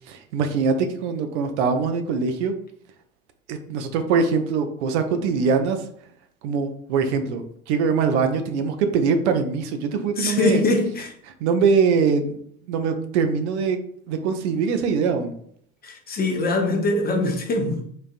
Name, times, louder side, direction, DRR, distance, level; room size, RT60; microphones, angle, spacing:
voice 1, 0.1-2.5 3.5-5.9 6.4-10.6 11.3-12.4 12.7-13.8 14.1-15.3, right 5 dB, 55° right, 0.5 m, -22 dB
voice 2, 10.2-11.1 15.8-17.8, left 2 dB, 20° left, 0.5 m, -23 dB
3.8 x 2.5 x 2.4 m
figure-of-eight pair, 70°, 43 cm